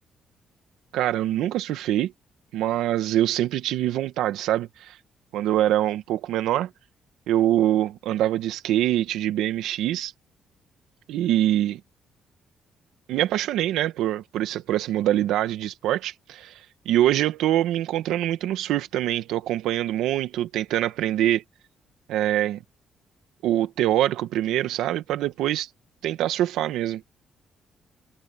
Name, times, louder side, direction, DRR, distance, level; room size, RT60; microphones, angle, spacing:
voice 1, 0.9-2.1 2.5-5.0 5.3-6.7 7.3-10.1 11.1-11.8 13.1-16.5 16.8-21.4 22.1-22.6 23.4-25.7 26.0-27.0, right 13 dB, 90° right, 1.7 m, -24 dB
cardioid pair, 90°, 0 cm